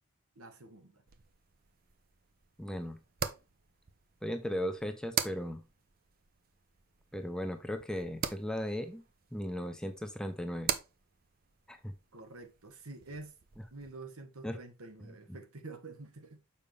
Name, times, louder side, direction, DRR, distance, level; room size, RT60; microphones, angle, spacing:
voice 1, 0.4-1.0 12.1-13.3 13.7-16.4, right 3 dB, 80° right, 1.3 m, -48 dB
sound 1, 1.1-13.9, right 8 dB, 45° right, 0.6 m, -43 dB
voice 2, 2.6-3.0 4.2-5.6 7.1-9.0 9.3-10.7 11.7-11.9 14.4-14.6 15.0-15.1, equal, 5° left, 0.7 m, -37 dB
7.0 x 5.3 x 3.4 m
head